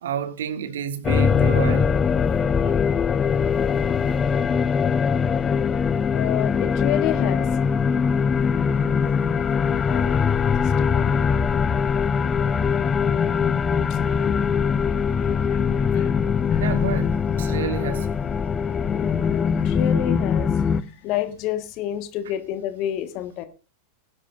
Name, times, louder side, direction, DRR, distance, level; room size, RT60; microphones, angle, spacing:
voice 1, 0.0-1.9 2.6-2.8 9.0-9.2 16.6-18.1, right 8 dB, 60° right, 1.7 m, -30 dB
sound 1, 1.0-20.8, left 6 dB, 20° left, 0.6 m, -22 dB
voice 2, 6.1-7.5 9.9-10.4 10.9-11.4 13.9-14.4 14.8-16.2 16.5-16.7 18.9-23.5, left 12 dB, 40° left, 1.5 m, -30 dB
21.0 x 11.0 x 2.5 m
figure-of-eight pair, 90°, 0 cm